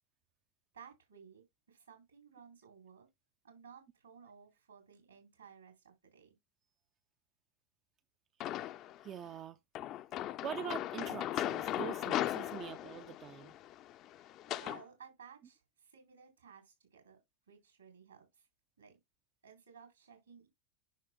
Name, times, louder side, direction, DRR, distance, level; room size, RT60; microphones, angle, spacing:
voice 1, 0.7-3.1 3.4-6.3 14.0-18.5 18.8-19.0 19.4-20.5, right 7 dB, 75° right, 3.9 m, -57 dB
sound 1, 8.4-9.0 9.7-14.8, left 13 dB, 35° left, 0.4 m, -38 dB
voice 2, 9.0-9.6 10.4-13.5, right 9 dB, 30° right, 0.4 m, -44 dB
10.0 x 6.0 x 2.2 m
figure-of-eight pair, 90°, 0 cm